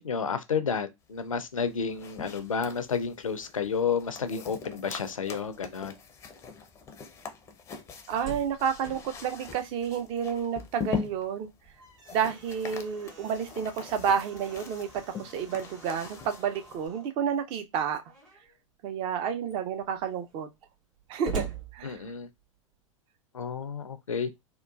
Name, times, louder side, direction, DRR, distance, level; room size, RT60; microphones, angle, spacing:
voice 1, 0.0-5.9 21.8-22.3 23.3-24.3, left 6 dB, 80° left, 0.4 m, -31 dB
sound 1, 1.6-16.9, left 7 dB, 15° left, 0.5 m, -42 dB
Slam, 7.8-10.6 11.0-11.1 11.5-17.1 18.0-18.6 19.1-19.2 19.4-22.6, right 4 dB, 70° right, 1.7 m, -43 dB
voice 2, 8.1-11.5 12.1-14.9 15.2-18.0 18.8-20.5 21.1-21.4 21.7-22.0, right 7 dB, 35° right, 0.5 m, -30 dB
3.7 x 2.3 x 2.3 m
figure-of-eight pair, 95°, 17 cm